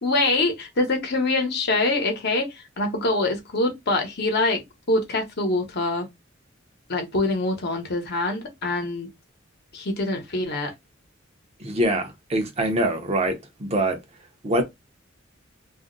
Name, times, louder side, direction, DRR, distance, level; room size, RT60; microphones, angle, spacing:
voice 1, 0.0-6.1 6.9-9.1 9.7-10.7, left 2 dB, 55° left, 0.9 m, -24 dB
voice 2, 11.6-14.0 14.4-14.6, right 1 dB, 30° right, 0.6 m, -24 dB
2.4 x 2.0 x 3.7 m
head